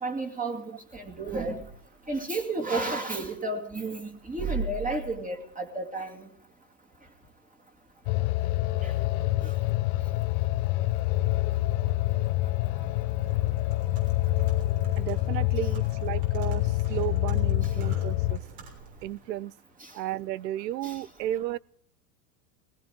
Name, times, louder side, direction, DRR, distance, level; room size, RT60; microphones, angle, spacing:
voice 1, 0.0-1.6 2.1-6.3 8.8-8.9 9.4-9.5 19.8-19.9 20.8-21.0, right 2 dB, 15° right, 2.3 m, -32 dB
sound 1, 8.1-18.4, left 16 dB, 60° left, 0.7 m, -27 dB
Computer keyboard, 13.0-19.2, right 3 dB, 70° right, 6.6 m, -46 dB
voice 2, 15.0-18.4 19.0-19.5 19.9-21.6, right 13 dB, 90° right, 0.5 m, -33 dB
19.0 x 17.5 x 3.7 m
hypercardioid pair, 95°, 49 cm